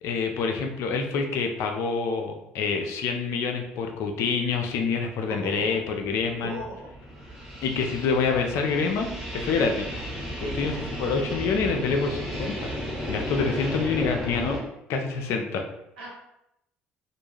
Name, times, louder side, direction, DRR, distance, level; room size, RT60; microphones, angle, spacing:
voice 1, 0.0-6.6 7.6-9.9 10.4-10.7 11.0-12.7 13.1-14.6 14.9-15.6, left 5 dB, 65° left, 4 dB, 0.5 m, -27 dB
voice 2, 5.4-5.7 6.4-6.7 7.1-7.6 10.4-10.7 16.0-16.1, right 1 dB, 90° right, -5 dB, 0.9 m, -38 dB
sound 1, 5.8-14.6, equal, 5° right, 1.2 m, -34 dB
2.5 x 2.2 x 3.1 m, 0.82 s
hypercardioid pair, 60°, 5 cm